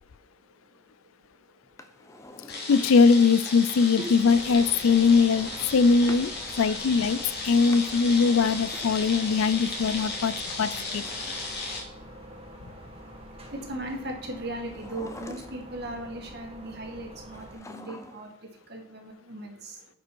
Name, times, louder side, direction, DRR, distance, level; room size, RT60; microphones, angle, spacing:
voice 1, 0.0-2.7 4.0-4.1 11.3-19.9, right 1 dB, 50° right, 2 dB, 1.9 m, -40 dB
Drawer open or close, 1.6-3.2 4.8-6.3 7.5-9.3 10.5-12.2 14.6-15.9 17.3-18.4 18.7-18.8, left 1 dB, 15° left, 0.6 m, -47 dB
sound 1, 2.5-11.8, left 3 dB, 50° left, 2.6 m, -35 dB
voice 2, 2.7-6.3 6.6-7.2 7.4-11.0, left 5 dB, 75° left, 18 dB, 0.4 m, -21 dB
sound 2, 4.1-17.6, equal, 25° right, 1.5 m, -46 dB
11.0 x 5.0 x 4.6 m, 0.71 s
head